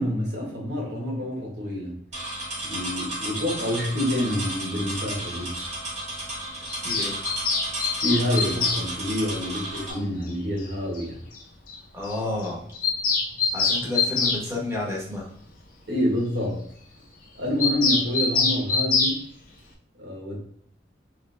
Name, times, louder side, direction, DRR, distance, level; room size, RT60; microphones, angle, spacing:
voice 1, 0.0-1.9 2.6-5.6 8.0-11.2 15.9-16.6 17.3-19.3 20.0-20.4, left 1 dB, 65° right, -3 dB, 1.4 m, -27 dB
sound 1, 2.1-9.9, right 1 dB, 40° right, 1.2 m, -33 dB
Bird vocalization bird call bird song, 6.7-8.8 10.3-10.4 10.6-10.7 10.9-11.0 11.3-11.4 11.7-11.8 12.0-12.2 12.4-14.4 17.6-19.2, left 4 dB, 50° left, 0.7 m, -24 dB
voice 2, 6.8-7.2 11.9-12.6 13.5-15.2, left 2 dB, 15° right, -3 dB, 1.1 m, -30 dB
3.3 x 3.2 x 3.3 m, 0.64 s
head